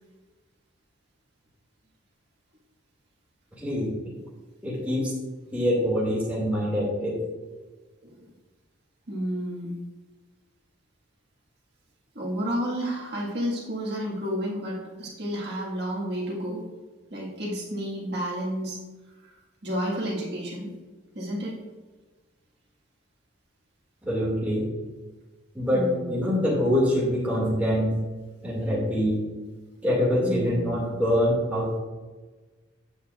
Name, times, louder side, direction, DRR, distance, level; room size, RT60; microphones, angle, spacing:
voice 1, 3.6-3.9 4.6-5.1 5.5-7.2 24.0-24.7 25.5-27.9 28.4-29.2 29.8-31.8, equal, 5° right, -5 dB, 2.1 m, -24 dB
voice 2, 9.1-9.8 12.2-16.6 17.1-18.8 19.6-20.7 21.2-21.6 25.7-26.3 30.2-30.6, equal, 50° right, -4 dB, 1.8 m, -31 dB
8.6 x 8.1 x 2.4 m, 1.3 s
head